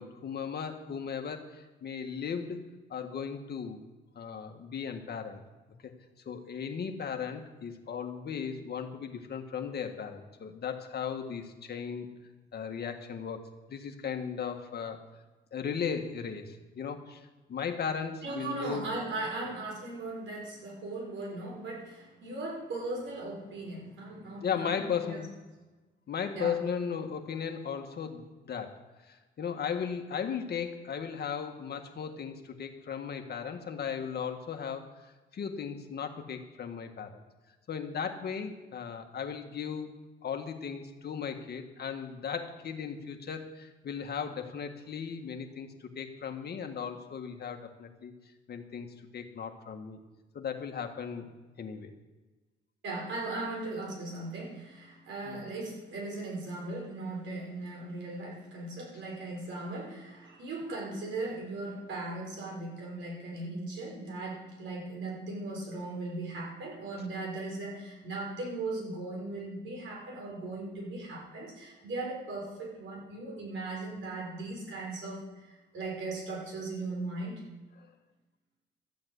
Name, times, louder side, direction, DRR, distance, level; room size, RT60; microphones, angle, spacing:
voice 1, 0.0-2.6 2.9-3.8 4.2-5.4 5.8-5.9 6.3-12.1 12.5-15.0 15.5-18.9 24.4-25.3 26.1-28.8 29.1-34.9 35.3-37.2 37.7-39.9 40.2-48.1 48.5-48.9 49.1-50.0 50.3-51.3 51.6-51.9 55.3-55.4, left 7 dB, 55° left, 5 dB, 1.8 m, -36 dB
voice 2, 18.2-25.2 26.4-26.5 52.8-77.4, right 2 dB, 75° right, -2 dB, 6.2 m, -38 dB
13.5 x 8.8 x 8.3 m, 1.2 s
cardioid pair, 90°, 20 cm